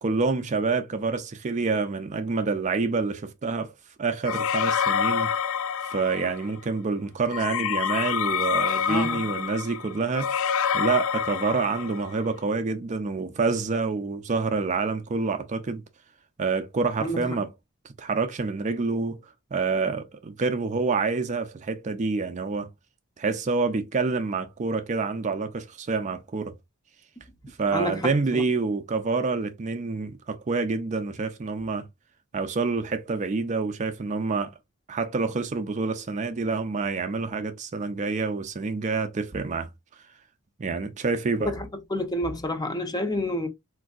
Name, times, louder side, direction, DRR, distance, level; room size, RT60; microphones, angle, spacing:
voice 1, 0.0-3.7 4.0-5.3 5.8-10.3 10.7-15.8 16.4-17.5 18.0-22.7 23.2-26.5 27.6-31.9 32.3-34.5 34.9-39.7 40.6-41.5, right 4 dB, 35° right, 0.4 m, -27 dB
sound 1, 4.2-6.5 7.3-12.2, left 7 dB, 65° left, 0.3 m, -27 dB
voice 2, 8.9-9.2 17.0-17.3 27.7-28.4 41.4-41.7 41.9-43.5, left 1 dB, 20° left, 0.6 m, -29 dB
4.0 x 2.6 x 2.3 m
head